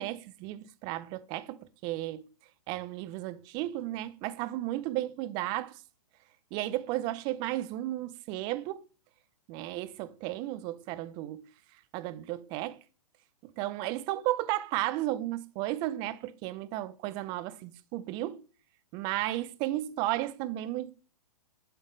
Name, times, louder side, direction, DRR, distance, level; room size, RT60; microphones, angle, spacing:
voice 1, 0.0-2.2 2.7-5.7 6.5-8.8 9.5-11.4 11.9-12.8 13.6-18.4 18.9-20.9, right 15 dB, 25° right, 0.4 m, -34 dB
8.1 x 3.6 x 3.9 m
hypercardioid pair, 145°, 19 cm